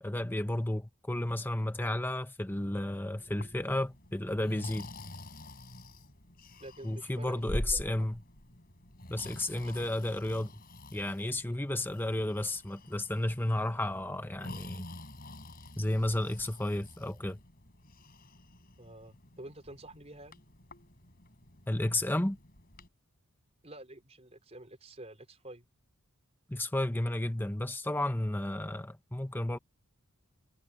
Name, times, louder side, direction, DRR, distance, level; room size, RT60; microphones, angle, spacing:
voice 1, 0.0-4.9 6.8-8.2 9.1-10.5 10.9-14.8 15.8-17.4 21.7-22.4 26.5-29.6, left 1 dB, 10° left, 0.8 m, -32 dB
Breathing, 3.2-22.9, left 1 dB, 45° left, 4.7 m, -46 dB
voice 2, 6.6-8.1 9.6-9.9 11.4-11.6 18.8-20.4 23.6-25.7, right 1 dB, 30° right, 4.4 m, -49 dB
head